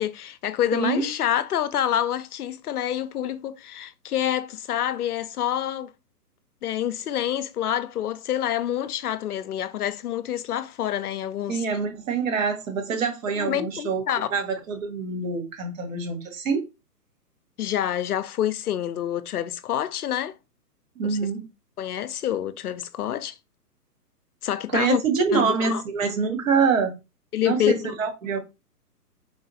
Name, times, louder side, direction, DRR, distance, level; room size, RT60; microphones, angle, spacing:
voice 1, 0.0-5.9 6.6-11.6 13.3-14.3 17.6-20.4 21.0-21.3 21.8-23.4 24.4-25.0 25.3-25.8 27.3-27.9, left 11 dB, 70° left, 0.5 m, -27 dB
voice 2, 0.7-1.1 11.5-14.0 14.3-16.7 21.0-21.4 24.7-27.0 27.4-28.4, right 5 dB, 55° right, 1.4 m, -25 dB
4.1 x 3.0 x 2.7 m
hypercardioid pair, 140°, 48 cm